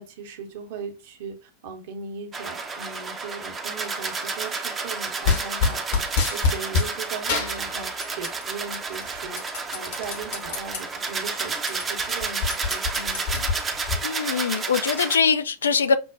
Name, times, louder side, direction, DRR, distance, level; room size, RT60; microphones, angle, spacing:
voice 1, 0.0-9.4 9.7-13.2, right 5 dB, 55° right, 0.8 m, -38 dB
sound 1, 2.3-15.2, right 4 dB, 20° right, 0.5 m, -31 dB
sound 2, 5.2-6.9 7.3-8.4 8.7-10.8 11.2-11.3 11.6-14.0, left 5 dB, 50° left, 1.1 m, -26 dB
voice 2, 14.0-16.0, left 6 dB, 70° left, 0.3 m, -22 dB
5.9 x 2.1 x 2.5 m
figure-of-eight pair, 90°, 0 cm